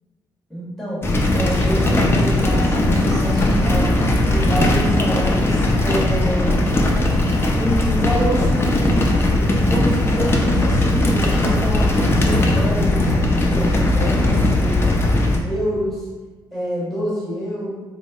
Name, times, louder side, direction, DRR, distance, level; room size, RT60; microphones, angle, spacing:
voice 1, 0.5-1.0 1.3-3.9 4.3-6.7 7.5-13.1 13.5-14.9 15.4-16.1 16.5-17.7, equal, 5° left, -8 dB, 1.3 m, -27 dB
sound 1, 1.0-15.4, left 1 dB, 30° left, 0.5 m, -18 dB
4.0 x 2.1 x 3.6 m, 1.3 s
cardioid pair, 105°, 8 cm